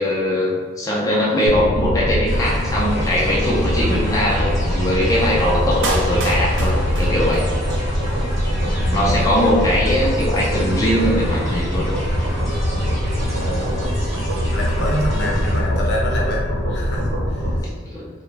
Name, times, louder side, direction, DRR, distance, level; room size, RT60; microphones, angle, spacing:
voice 1, 0.0-7.4 8.9-11.9 17.5-18.2, left 1 dB, 20° left, -6 dB, 0.6 m, -21 dB
sound 1, 1.5-17.6, equal, 70° right, 1.0 m, -22 dB
sound 2, 2.2-15.6, equal, 20° right, 1.4 m, -33 dB
Clapping, 5.8-7.8 8.1-8.2, right 2 dB, 85° right, 0.5 m, -28 dB
voice 2, 8.7-9.3 13.4-13.9 14.5-16.4 16.7-17.6, left 1 dB, 60° left, -2 dB, 0.7 m, -27 dB
3.6 x 2.2 x 3.2 m, 1.5 s
head